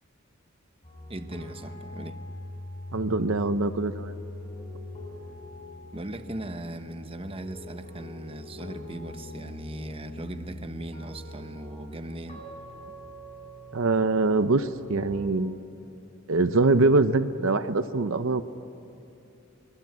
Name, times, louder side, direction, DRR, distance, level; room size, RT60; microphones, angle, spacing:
sound 1, 0.8-15.2, left 1 dB, 30° left, 6.5 m, -42 dB
voice 1, 1.1-2.2 5.9-12.5, right 1 dB, 25° right, 9 dB, 1.0 m, -39 dB
voice 2, 2.9-4.1 13.7-15.7 16.3-18.4, right 3 dB, 70° right, 11 dB, 0.8 m, -23 dB
25.0 x 23.0 x 9.5 m, 2.7 s
head